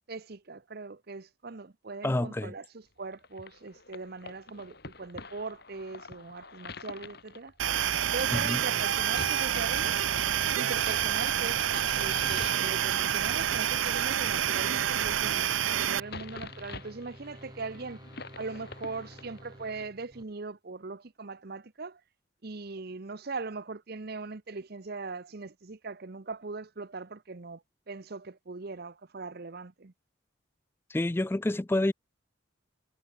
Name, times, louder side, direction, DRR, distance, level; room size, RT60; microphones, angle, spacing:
voice 1, 0.1-7.5 8.1-10.0 10.5-18.0 18.3-22.0 22.4-27.6 27.9-29.9, right 3 dB, 50° right, 0.8 m, -40 dB
voice 2, 2.0-2.5 8.3-8.6 30.9-31.9, left 1 dB, 10° left, 0.3 m, -28 dB
sound 1, 3.1-19.8, left 3 dB, 55° left, 4.0 m, -46 dB
sound 2, 7.6-16.0, right 10 dB, 80° right, 0.6 m, -28 dB
sound 3, 8.9-20.2, right 1 dB, 20° right, 3.9 m, -50 dB
head